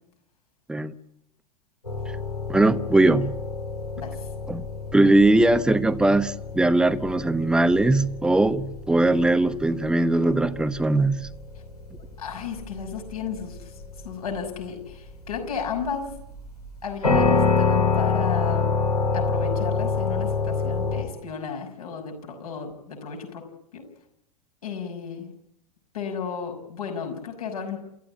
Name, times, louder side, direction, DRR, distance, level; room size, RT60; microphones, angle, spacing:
sound 1, 1.9-21.0, left 4 dB, 85° left, 5.5 m, -27 dB
voice 1, 2.5-3.3 4.5-4.6 4.9-11.3, right 2 dB, 5° right, 0.9 m, -20 dB
voice 2, 4.0-4.3 12.2-16.1 16.8-18.7 19.1-23.5 23.7-23.8 24.6-25.3 25.9-27.8, left 6 dB, 70° left, 6.0 m, -33 dB
28.5 x 14.0 x 9.8 m
figure-of-eight pair, 90°, 20 cm